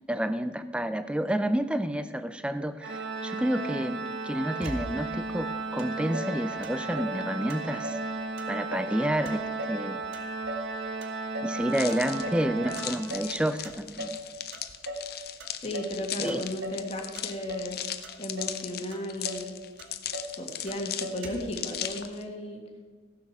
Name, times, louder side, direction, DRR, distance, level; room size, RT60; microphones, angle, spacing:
voice 1, 0.1-8.0 8.5-9.4 9.7-10.0 11.4-14.2 16.2-16.4, right 1 dB, 5° right, 11 dB, 0.4 m, -29 dB
Organ, 2.8-13.6, right 3 dB, 70° right, 0.8 m, -35 dB
Motor vehicle (road), 4.6-5.3 5.8-5.9 6.1-7.2 7.5-8.1 8.4-9.0 9.3-10.7 11.0-11.6 11.9-12.5 12.8-13.4 13.6-14.2 14.5-15.1 15.4-16.0 16.3-16.9 17.2-17.7 18.0-18.6 18.9-19.0 19.2-19.5 19.8-20.4 20.7-20.8 21.0-21.6, equal, 90° right, 1.7 m, -38 dB
sound 1, 11.7-22.2, left 11 dB, 50° left, 0.7 m, -38 dB
voice 2, 15.6-17.8 18.2-19.6 20.3-22.6, left 1 dB, 30° left, 1 dB, 1.7 m, -35 dB
15.5 x 7.5 x 6.0 m, 1.4 s
head